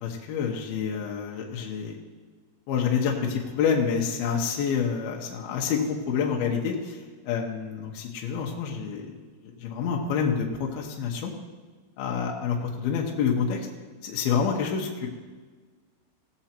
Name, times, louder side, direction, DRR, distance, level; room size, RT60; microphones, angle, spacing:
voice 1, 0.0-2.0 2.7-9.2 9.6-11.3 12.0-13.7 14.0-15.1, left 6 dB, 70° left, -1 dB, 2.6 m, -28 dB
17.5 x 7.2 x 4.4 m, 1.4 s
omnidirectional pair, 5.2 m